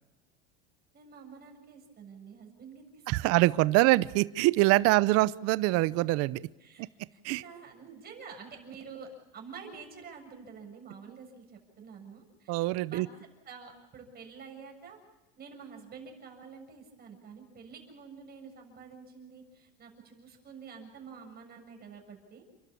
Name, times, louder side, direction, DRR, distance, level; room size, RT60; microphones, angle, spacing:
voice 1, 0.9-3.4 4.9-5.0 6.6-12.6 12.9-13.1 13.5-15.0 15.4-22.4, right 5 dB, 30° right, 3 dB, 7.1 m, -48 dB
voice 2, 3.1-6.4 7.2-7.4 12.5-13.1, right 19 dB, 50° right, 18 dB, 0.7 m, -24 dB
30.0 x 12.5 x 8.7 m, 1.0 s
supercardioid pair, 125°, 30 cm